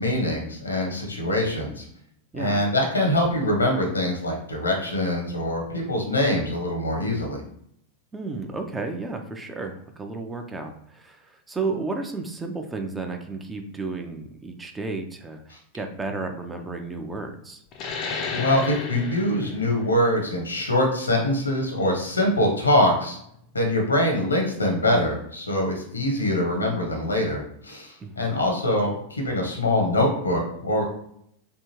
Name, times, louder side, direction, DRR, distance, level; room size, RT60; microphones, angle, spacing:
voice 1, 0.0-1.8 2.3-7.4 15.5-15.6 18.3-23.2 23.5-30.8, left 1 dB, 80° left, 0 dB, 1.0 m, -24 dB
voice 2, 8.1-17.6 28.0-28.3, right 3 dB, 15° right, 4 dB, 0.5 m, -33 dB
sound 1, 17.7-22.9, left 4 dB, 35° left, 0.5 m, -35 dB
3.4 x 2.4 x 3.0 m, 0.70 s
figure-of-eight pair, 90°, 0 cm